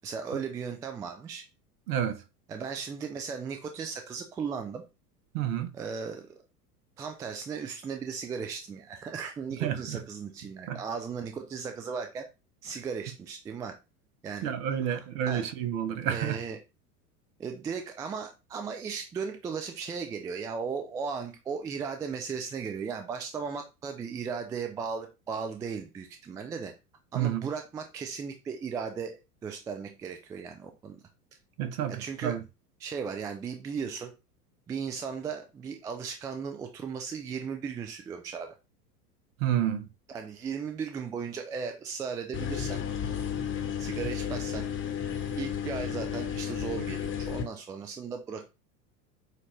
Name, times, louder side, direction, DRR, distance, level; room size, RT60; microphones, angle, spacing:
voice 1, 0.0-1.4 2.5-4.8 5.7-6.4 7.0-12.2 12.6-13.8 14.2-14.5 14.9-15.0 15.3-15.4 16.0-16.6 17.4-26.7 27.1-31.0 31.9-32.4 32.8-34.1 34.7-38.5 40.1-42.8 43.8-44.7 45.4-48.4, right 6 dB, 10° right, 0.3 m, -36 dB
voice 2, 1.9-2.2 5.3-5.7 9.6-10.0 10.7-10.8 14.4-16.4 27.1-27.5 31.6-32.4 39.4-39.9, right 10 dB, 55° right, 1.0 m, -29 dB
sound 1, 42.3-47.4, left 8 dB, 25° left, 1.0 m, -33 dB
6.6 x 2.5 x 3.1 m
figure-of-eight pair, 85°, 48 cm